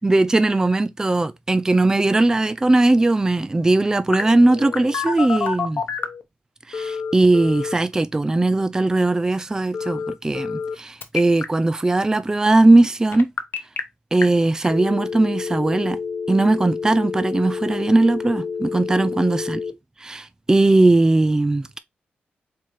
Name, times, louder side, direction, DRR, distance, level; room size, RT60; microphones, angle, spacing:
voice 1, 0.0-5.8 6.7-13.3 14.1-16.0 16.3-19.6 20.0-21.8, right 2 dB, 15° right, 0.3 m, -19 dB
Telephone, 4.1-6.2 6.7-7.7 9.7-10.7 11.0-11.4 13.1-13.8 14.2-14.3 14.7-19.7, left 5 dB, 60° left, 0.8 m, -28 dB
4.5 x 3.9 x 3.0 m
cardioid pair, 75°, 4 cm